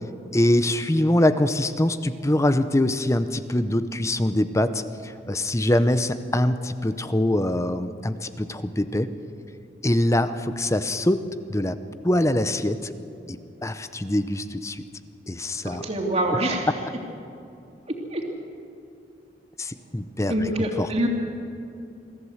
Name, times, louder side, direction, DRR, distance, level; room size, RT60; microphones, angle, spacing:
voice 1, 0.3-9.1 9.8-11.2 11.5-11.8 12.0-12.8 13.3-14.8 15.3-15.8 19.6-20.3 20.8-20.9, left 1 dB, 15° left, 11 dB, 0.7 m, -23 dB
voice 2, 15.8-16.7 18.1-18.2 20.3-21.1, right 1 dB, 35° right, 1 dB, 2.8 m, -25 dB
23.5 x 14.5 x 8.0 m, 2.6 s
head